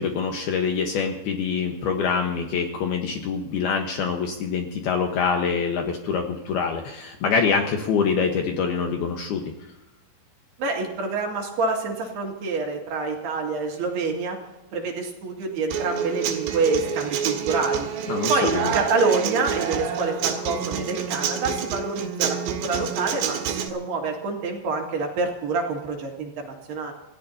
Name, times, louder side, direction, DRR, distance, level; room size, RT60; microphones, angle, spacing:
voice 1, 0.0-9.5 18.1-18.7, left 6 dB, 70° left, 3 dB, 2.6 m, -25 dB
voice 2, 10.6-14.4 14.7-17.9 18.3-26.9, right 3 dB, 60° right, 0 dB, 4.0 m, -27 dB
Human voice / Acoustic guitar, 15.7-23.7, right 8 dB, 90° right, 4.3 m, -28 dB
28.5 x 15.0 x 2.8 m, 1.0 s
omnidirectional pair, 5.6 m